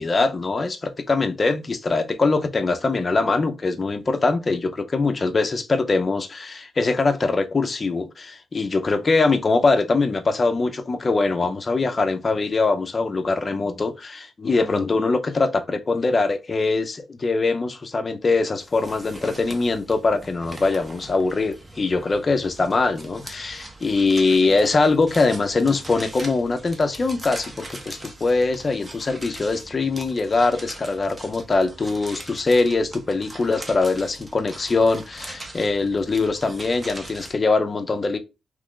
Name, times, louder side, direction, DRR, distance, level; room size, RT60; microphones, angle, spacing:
voice 1, 0.0-38.2, left 3 dB, 25° left, 0.5 m, -22 dB
sound 1, 18.6-37.3, right 2 dB, 20° right, 0.6 m, -41 dB
3.0 x 2.4 x 3.6 m
wide cardioid pair, 160°, 0 cm